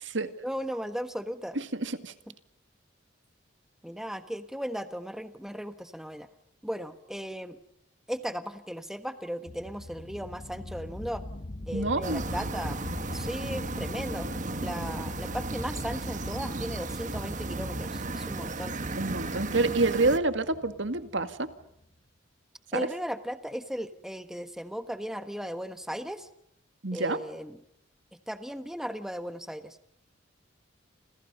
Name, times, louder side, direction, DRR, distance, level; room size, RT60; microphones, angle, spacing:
voice 1, 0.4-1.6 3.8-6.3 6.6-7.6 8.1-11.2 11.7-12.8 13.1-14.3 14.6-18.8 22.7-26.3 26.9-27.6 28.3-29.9, equal, ahead, 9 dB, 1.3 m, -36 dB
voice 2, 1.6-2.1 11.7-12.2 19.0-21.5 22.7-22.9 26.8-27.2, right 3 dB, 70° right, 10 dB, 2.0 m, -28 dB
sound 1, 9.5-21.8, left 1 dB, 35° left, 0.9 m, -42 dB
sound 2, 12.0-20.2, right 2 dB, 40° right, 1.3 m, -35 dB
29.5 x 28.0 x 5.5 m, 0.76 s
head